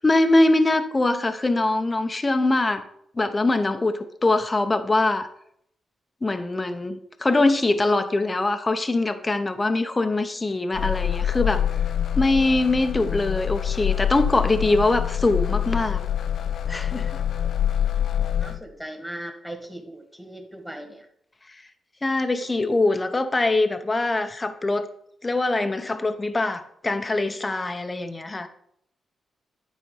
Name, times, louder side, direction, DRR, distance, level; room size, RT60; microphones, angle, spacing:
voice 1, 0.0-2.8 3.2-3.9 4.2-5.3 6.2-11.6 12.2-16.0 16.7-17.1 22.0-24.9 25.2-28.5, left 2 dB, 25° left, 8 dB, 0.8 m, -22 dB
sound 1, 10.7-18.6, left 10 dB, 70° left, 0.5 m, -25 dB
voice 2, 18.4-21.1, right 1 dB, 5° right, 5 dB, 1.8 m, -38 dB
9.5 x 4.1 x 5.5 m, 0.71 s
cardioid pair, 65°, 0 cm